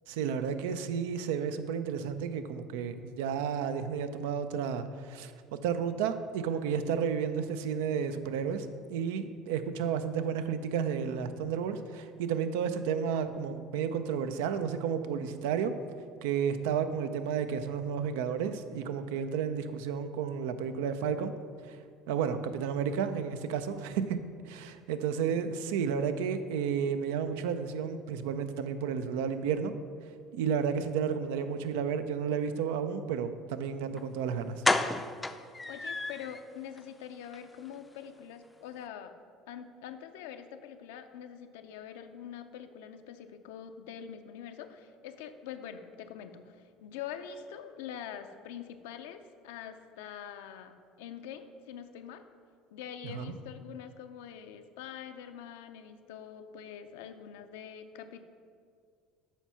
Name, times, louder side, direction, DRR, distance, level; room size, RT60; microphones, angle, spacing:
voice 1, 0.1-5.3 5.6-15.7 16.2-21.3 21.7-21.8 22.1-24.2 24.5-29.7 30.3-34.6 53.0-53.3, right 7 dB, 85° right, 10 dB, 0.4 m, -32 dB
sound 1, 34.0-34.1 34.6-36.4 36.8-36.9 37.2-37.4 37.6-37.7, left 2 dB, 15° left, 0.4 m, -30 dB
voice 2, 35.7-39.1 39.5-52.2 52.7-58.3, left 8 dB, 85° left, 8 dB, 0.5 m, -44 dB
7.2 x 4.5 x 5.5 m, 2.2 s
supercardioid pair, 85°, 0 cm